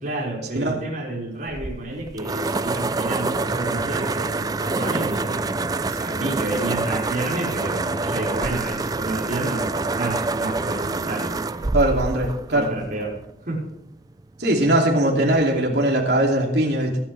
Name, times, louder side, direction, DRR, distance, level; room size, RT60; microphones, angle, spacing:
voice 1, 0.0-11.7 12.5-13.2 13.5-13.6, right 2 dB, 45° right, -3 dB, 5.1 m, -30 dB
sound 1, 1.5-13.3, right 3 dB, 20° right, 0.4 m, -26 dB
voice 2, 11.7-12.7 14.4-17.0, right 1 dB, 70° right, -1 dB, 2.8 m, -20 dB
23.0 x 9.1 x 3.4 m, 0.82 s
head